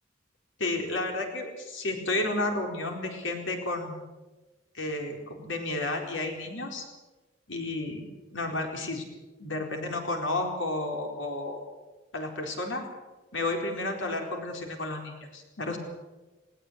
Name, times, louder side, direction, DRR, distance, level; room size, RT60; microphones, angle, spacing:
voice 1, 0.6-4.0 4.7-6.8 7.5-8.0 8.3-9.0 9.4-11.6 12.1-12.8 13.3-15.8, left 2 dB, 80° left, 2 dB, 4.4 m, -32 dB
19.5 x 18.0 x 8.3 m, 1.2 s
head